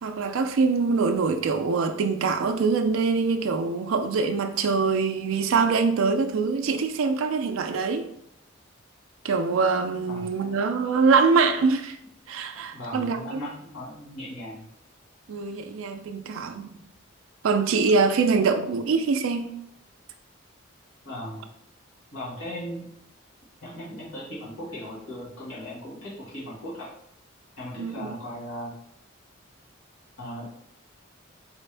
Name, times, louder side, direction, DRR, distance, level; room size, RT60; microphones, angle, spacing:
voice 1, 0.0-8.1 9.2-12.0 12.3-13.4 15.3-16.8 17.4-19.5 27.8-28.1, right 4 dB, 80° right, 0.4 m, -24 dB
voice 2, 10.1-10.6 12.7-14.7 21.0-21.5 22.1-22.9 23.6-26.9 27.6-28.7 30.2-30.5, equal, 75° left, 1.7 m, -37 dB
4.5 x 3.4 x 3.3 m
head